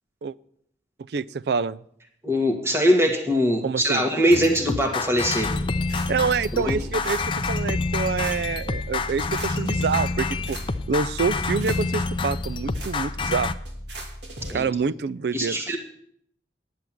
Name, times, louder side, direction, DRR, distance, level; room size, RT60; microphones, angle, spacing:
voice 1, 1.1-1.8 3.6-4.0 6.1-7.2 7.5-10.6 10.9-13.5 14.5-15.6, right 5 dB, 65° right, 19 dB, 0.4 m, -26 dB
voice 2, 2.2-5.5 6.5-6.7 14.5-14.7 15.3-15.8, equal, 15° right, 3 dB, 1.6 m, -22 dB
sound 1, 4.3-13.5, left 3 dB, 30° left, 0.5 m, -28 dB
sound 2, 5.4-14.5, equal, 85° right, 2.7 m, -36 dB
10.5 x 7.8 x 7.3 m, 0.69 s
head